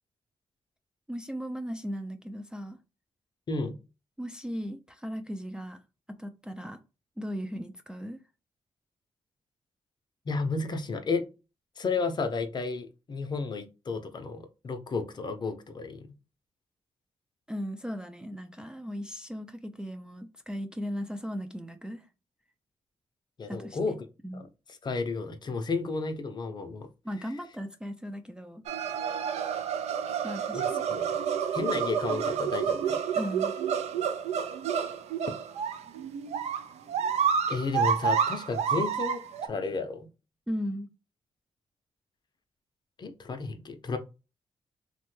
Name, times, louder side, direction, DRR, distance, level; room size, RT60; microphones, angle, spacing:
voice 1, 1.1-2.8 4.2-5.8 6.1-6.8 7.2-8.2 17.5-22.1 23.5-24.0 24.2-24.4 27.0-28.7 30.2-30.8 33.2-33.6 40.5-40.9, equal, 5° right, 0.3 m, -37 dB
voice 2, 10.3-11.3 11.8-16.1 23.4-24.0 24.3-24.5 24.8-26.9 30.5-31.2 31.5-33.0 37.5-40.1 43.0-44.0, left 4 dB, 40° left, 0.5 m, -32 dB
sound 1, 28.7-39.5, right 7 dB, 85° right, 0.4 m, -29 dB
3.1 x 2.1 x 3.1 m
cardioid pair, 110°, 11 cm